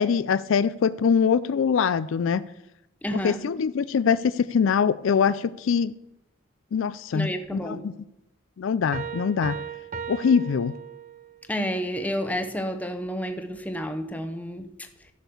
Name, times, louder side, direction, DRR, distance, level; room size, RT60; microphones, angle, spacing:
voice 1, 0.0-2.4 3.1-5.9 6.7-7.9 8.6-9.6 10.1-10.7, left 6 dB, 70° left, 16 dB, 0.4 m, -23 dB
voice 2, 3.0-3.5 7.1-7.8 11.5-14.7, equal, 5° left, 6 dB, 0.8 m, -30 dB
Piano, 8.9-11.4, right 6 dB, 40° right, 0.6 m, -36 dB
12.5 x 6.3 x 6.9 m, 0.86 s
head